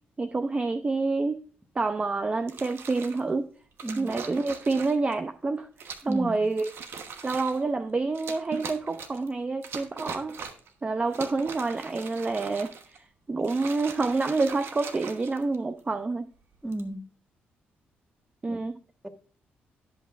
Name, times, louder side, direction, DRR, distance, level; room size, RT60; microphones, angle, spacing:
voice 1, 0.2-1.4 1.7-3.5 4.0-6.7 7.2-10.4 10.8-16.3 18.4-18.7, right 3 dB, 30° right, 0.6 m, -28 dB
sound 1, 2.4-3.2 3.8-5.1 5.8-6.2 6.5-7.6 8.1-9.3 9.6-10.7 11.1-13.0 13.4-15.8 16.5-16.9, right 5 dB, 65° right, 1.1 m, -41 dB
voice 2, 6.1-6.4 16.6-17.0 18.5-18.6 19.0-19.1, right 1 dB, 10° right, 1.4 m, -33 dB
16.5 x 5.6 x 2.5 m
cardioid pair, 65°, 4 cm